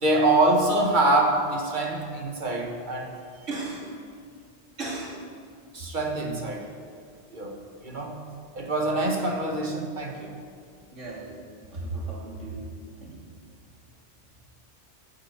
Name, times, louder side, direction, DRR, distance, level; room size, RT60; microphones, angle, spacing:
voice 1, 0.0-3.1 5.7-6.7 7.3-8.2 8.5-10.3, right 2 dB, 40° right, 1 dB, 1.7 m, -25 dB
voice 2, 3.5-3.9 4.8-5.2 10.9-11.3 11.7-12.6 13.0-13.2, right 3 dB, 90° right, -4 dB, 2.6 m, -35 dB
9.1 x 8.4 x 8.3 m, 2.2 s
omnidirectional pair, 1.2 m